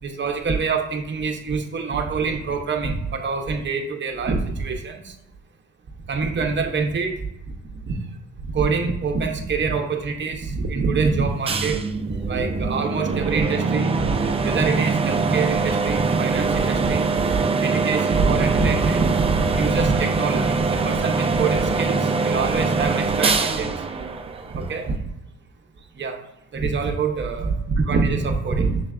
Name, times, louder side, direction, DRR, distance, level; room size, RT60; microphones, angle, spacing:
voice 1, 0.0-5.1 6.1-7.3 7.9-8.0 8.5-11.8 12.1-14.1 14.4-17.1 17.6-23.7 24.5-25.0 26.0-26.2 26.5-28.8, right 4 dB, 40° right, 4 dB, 0.7 m, -25 dB
sound 1, 11.5-25.0, right 4 dB, 20° right, 0.4 m, -23 dB
6.5 x 3.2 x 2.4 m, 0.86 s
cardioid pair, 90°, 30 cm